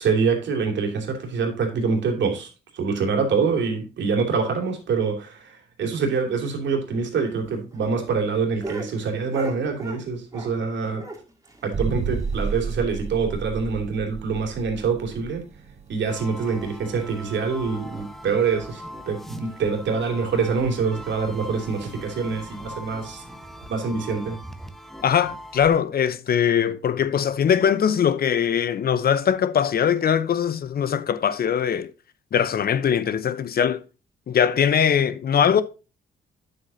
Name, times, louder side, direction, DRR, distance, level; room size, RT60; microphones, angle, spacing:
voice 1, 0.0-2.5 2.7-11.0 11.6-15.4 15.9-23.2 23.7-24.4, right 5 dB, 65° right, 2.9 m, -25 dB
sound 1, 7.2-10.7 10.9-12.9 13.2-13.3 13.6-13.7 14.1-14.2 14.8-15.1 15.9-16.0, right 2 dB, 15° right, 2.2 m, -40 dB
sound 2, 11.7-23.4, right 5 dB, 35° right, 1.0 m, -34 dB
sound 3, 16.1-25.8, left 1 dB, ahead, 1.2 m, -40 dB
voice 2, 25.0-31.9 32.3-33.8 34.3-35.6, left 8 dB, 50° left, 0.8 m, -21 dB
9.2 x 7.8 x 2.8 m
cardioid pair, 90°, 20 cm